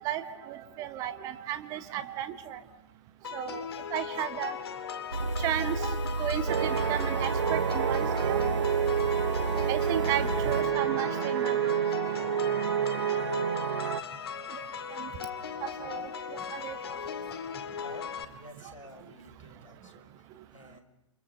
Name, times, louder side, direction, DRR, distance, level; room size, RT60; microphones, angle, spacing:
voice 1, 0.0-2.6 3.3-3.7 3.9-4.5 5.4-8.9 9.7-11.7 14.9-15.1 15.6-16.1 16.5-16.8, right 11 dB, 20° right, 11 dB, 1.3 m, -34 dB
sound 1, 3.2-18.2, left 7 dB, 50° left, 2.2 m, -38 dB
sound 2, 5.1-10.6, right 3 dB, 75° right, 1.1 m, -32 dB
sound 3, 6.5-14.0, right 9 dB, 50° right, 1.0 m, -29 dB
voice 2, 17.8-20.8, left 1 dB, 85° left, 8 dB, 5.2 m, -51 dB
29.0 x 25.5 x 6.8 m, 0.87 s
figure-of-eight pair, 125°, 16 cm